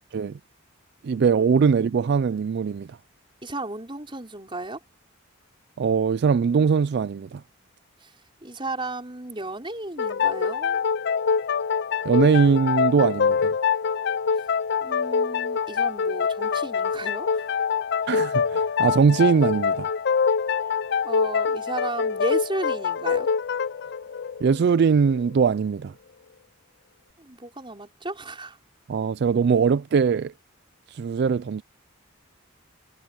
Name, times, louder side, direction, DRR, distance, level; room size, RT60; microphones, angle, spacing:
voice 1, 1.0-2.9 5.8-7.4 12.1-13.5 18.1-19.9 24.4-25.9 28.9-30.3 30.9-31.6, right 6 dB, 55° right, 0.3 m, -21 dB
voice 2, 3.4-4.8 8.0-8.1 8.4-10.9 14.8-17.5 21.0-23.3 27.2-28.6, right 2 dB, 25° right, 5.3 m, -34 dB
sound 1, 10.0-25.3, left 6 dB, 55° left, 0.4 m, -25 dB
head